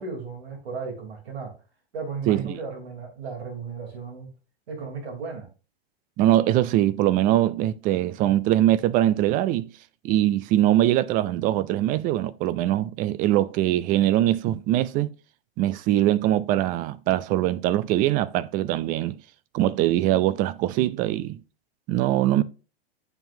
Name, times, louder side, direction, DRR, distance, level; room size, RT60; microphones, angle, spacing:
voice 1, 0.0-1.6 1.9-4.3 4.7-5.5, right 5 dB, 75° right, 3.5 m, -35 dB
voice 2, 2.3-2.6 6.2-9.7 10.0-15.1 15.6-19.2 19.5-21.4 21.9-22.4, right 13 dB, 25° right, 0.4 m, -22 dB
9.0 x 5.8 x 2.7 m
hypercardioid pair, 120°, 31 cm